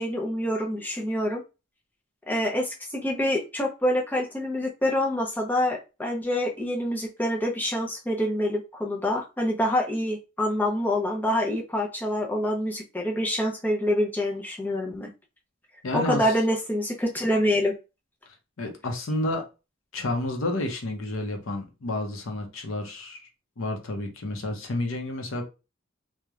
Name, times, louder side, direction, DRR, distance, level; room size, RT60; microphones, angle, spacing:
voice 1, 0.0-1.4 2.3-15.1 15.9-17.8, left 1 dB, 10° left, 0.5 m, -26 dB
voice 2, 15.8-16.3 18.6-19.5 19.9-23.3 23.6-25.4, left 2 dB, 80° left, 0.7 m, -30 dB
3.0 x 2.1 x 2.3 m
head